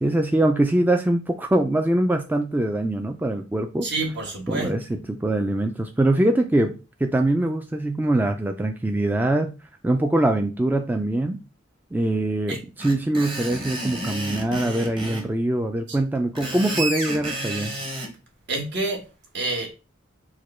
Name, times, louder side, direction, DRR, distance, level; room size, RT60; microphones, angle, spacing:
voice 1, 0.0-3.9 4.5-6.7 7.0-9.5 9.8-11.4 11.9-17.7, right 1 dB, 10° right, 0.3 m, -23 dB
voice 2, 3.8-4.8 12.5-12.6 15.9-16.0 18.5-19.0 19.3-19.7, right 2 dB, 60° right, 1.4 m, -28 dB
Screech, 12.8-15.3 16.2-18.1, right 1 dB, 25° right, 1.1 m, -31 dB
4.8 x 2.2 x 4.3 m
head